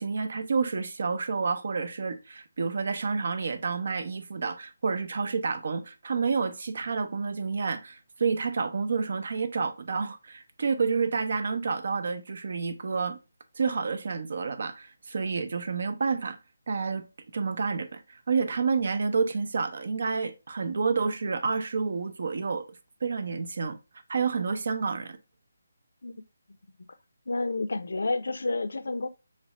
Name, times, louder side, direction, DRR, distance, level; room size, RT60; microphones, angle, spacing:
voice 1, 0.0-13.2 13.6-16.4 16.7-17.1 17.3-22.7 23.0-23.8 24.1-25.2, right 5 dB, 50° right, 0.6 m, -29 dB
voice 2, 27.3-29.1, left 3 dB, 80° left, 0.5 m, -30 dB
3.3 x 3.2 x 2.8 m
hypercardioid pair, 170°, 0 cm